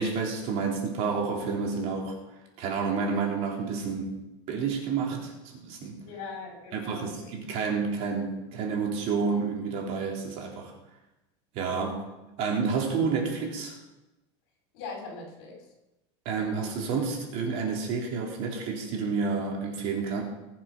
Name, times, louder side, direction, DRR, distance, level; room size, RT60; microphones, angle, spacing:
voice 1, 0.0-2.2 2.6-4.2 4.5-6.0 6.7-10.7 11.5-12.0 12.4-13.8 16.3-20.2, right 5 dB, 45° right, 1 dB, 3.5 m, -29 dB
voice 2, 6.0-7.3 14.7-15.7, left 4 dB, 60° left, 0 dB, 6.0 m, -40 dB
20.5 x 7.4 x 6.1 m, 0.98 s
supercardioid pair, 160°, 15 cm